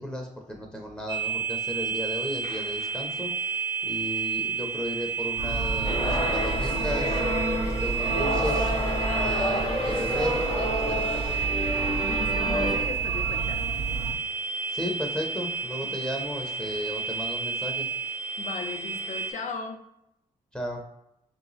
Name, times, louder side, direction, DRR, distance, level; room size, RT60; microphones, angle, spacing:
voice 1, 0.0-3.3 3.9-7.2 7.8-8.7 9.0-11.4 14.7-17.9 20.5-20.8, equal, 5° left, 1 dB, 0.7 m, -35 dB
sound 1, 1.1-19.3, right 6 dB, 75° right, 1.0 m, -31 dB
sound 2, 5.4-14.1, right 3 dB, 55° right, 0.5 m, -32 dB
sound 3, 5.8-12.8, left 1 dB, 35° left, 0.9 m, -29 dB
voice 2, 12.0-13.7 15.8-15.9 18.4-19.9, left 5 dB, 65° left, 5 dB, 0.6 m, -37 dB
3.3 x 2.9 x 4.0 m, 0.80 s
cardioid pair, 110°, 14 cm